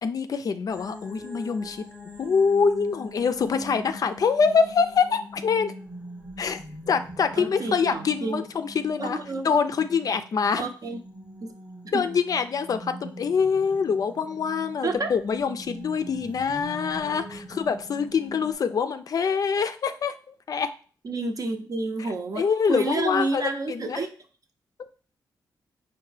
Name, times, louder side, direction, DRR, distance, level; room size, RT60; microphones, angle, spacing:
voice 1, 0.0-1.9 2.2-5.7 6.4-6.6 6.9-9.2 9.4-10.6 11.9-20.1 20.5-20.7 22.4-23.4 23.7-24.0, left 6 dB, 55° left, 9 dB, 0.3 m, -25 dB
sound 1, 0.7-18.5, equal, 15° right, 0.8 m, -42 dB
voice 2, 7.3-8.4 9.0-9.5 10.6-11.0 11.4-11.5 11.8-12.1 14.8-15.1 21.0-24.1, right 3 dB, 55° right, 6 dB, 0.6 m, -30 dB
4.4 x 2.1 x 3.2 m, 0.39 s
cardioid pair, 75°, 7 cm